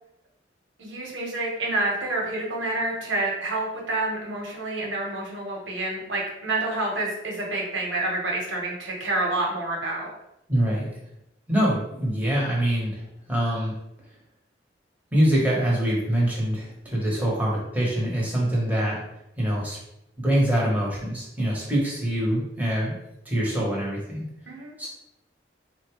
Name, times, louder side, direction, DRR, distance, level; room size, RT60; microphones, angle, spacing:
voice 1, 0.8-10.1 24.5-24.7, right 2 dB, 85° right, -1 dB, 0.9 m, -28 dB
voice 2, 10.5-10.9 11.5-13.0 13.3-13.7 15.1-19.0 19.4-19.8 20.2-23.0 23.2-24.3 24.8-24.9, equal, 10° right, -4 dB, 0.8 m, -24 dB
3.8 x 2.2 x 3.0 m, 0.83 s
head